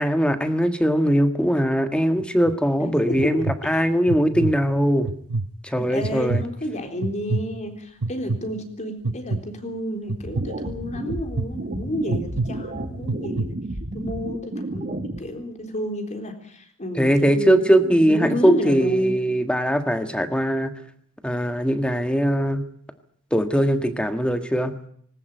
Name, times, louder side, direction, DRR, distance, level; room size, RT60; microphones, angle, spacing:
voice 1, 0.0-5.1 5.6-6.4 17.0-20.7 21.2-22.6 23.3-24.8, equal, 5° left, 9 dB, 1.6 m, -21 dB
sound 1, 2.2-2.5 3.1-3.6 4.1-4.5 5.0-5.5 6.0-6.5 7.0-7.4 8.0-8.4 9.0-9.4 10.1-10.4 11.1-11.5 12.1-12.5 13.0-13.5, right 3 dB, 90° right, 0.9 m, -25 dB
voice 2, 2.8-3.5 3.7-3.9 5.7-13.6 13.9-19.2, equal, 35° left, 5 dB, 3.9 m, -31 dB
sound 2, 10.2-15.2, right 1 dB, 40° right, 2.1 m, -32 dB
20.0 x 19.0 x 9.1 m, 0.62 s
head